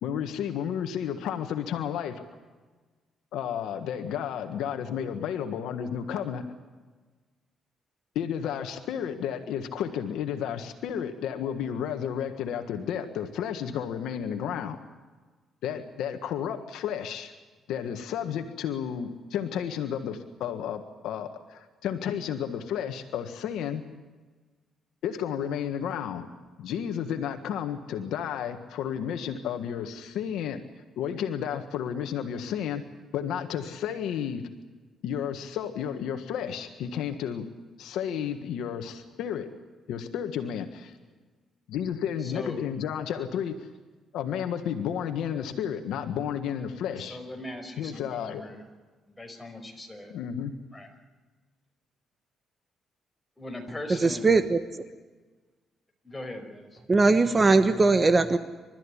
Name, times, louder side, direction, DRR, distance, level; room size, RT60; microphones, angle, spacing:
voice 1, 0.0-2.2 3.3-6.4 8.1-14.8 15.6-17.3 17.7-23.8 25.0-26.3 26.6-30.6 31.0-32.8 33.1-34.5 35.0-37.5 37.8-39.5 39.9-40.9 41.7-43.7 44.1-47.2 47.8-48.4 50.1-50.5, left 8 dB, 85° left, 6 dB, 1.6 m, -32 dB
voice 2, 42.2-42.6 47.0-48.6 49.2-50.1 50.7-50.9 53.4-54.4 56.0-56.8, left 1 dB, 15° left, 3 dB, 5.3 m, -40 dB
voice 3, 54.0-54.6 56.9-58.4, right 3 dB, 30° right, 10 dB, 1.2 m, -20 dB
28.5 x 13.5 x 10.0 m, 1.3 s
cardioid pair, 90°, 0 cm